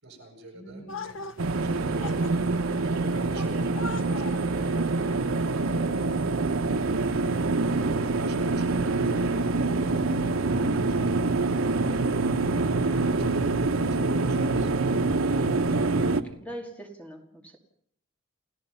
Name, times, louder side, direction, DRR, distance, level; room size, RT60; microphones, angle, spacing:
voice 1, 0.0-1.2 1.5-2.5 2.8-5.2 8.1-11.6 12.4-14.8, right 2 dB, 55° right, 3 dB, 7.5 m, -46 dB
voice 2, 0.5-1.2 16.1-17.6, right 1 dB, 5° left, 2 dB, 2.2 m, -43 dB
sound 1, 0.9-6.3, left 3 dB, 70° left, 1.1 m, -42 dB
sound 2, 1.4-16.2, right 3 dB, 85° right, 1.0 m, -25 dB
29.5 x 16.0 x 5.7 m, 0.65 s
head